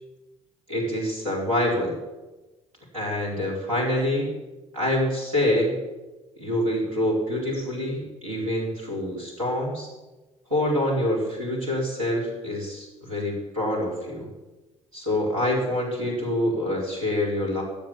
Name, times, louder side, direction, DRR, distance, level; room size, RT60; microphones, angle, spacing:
voice 1, 0.7-1.9 2.9-4.3 4.7-5.8 6.4-9.9 10.5-14.3 14.9-17.6, left 1 dB, 85° right, -3 dB, 4.4 m, -26 dB
16.5 x 10.5 x 7.2 m, 1.1 s
figure-of-eight pair, 45°, 17 cm